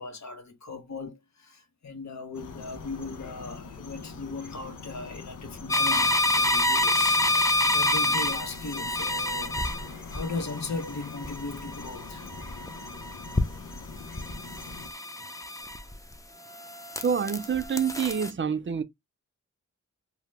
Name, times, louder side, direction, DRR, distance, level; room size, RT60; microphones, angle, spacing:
voice 1, 0.0-7.2 7.6-9.6 9.8-12.3, left 3 dB, 65° left, 0.9 m, -38 dB
sound 1, 2.3-14.9, left 4 dB, 90° left, 0.7 m, -43 dB
sound 2, 5.7-16.1 16.5-18.3, left 1 dB, 10° left, 0.5 m, -28 dB
voice 2, 17.0-18.8, right 7 dB, 40° right, 0.5 m, -27 dB
2.9 x 2.0 x 3.3 m
cardioid pair, 60°, 30 cm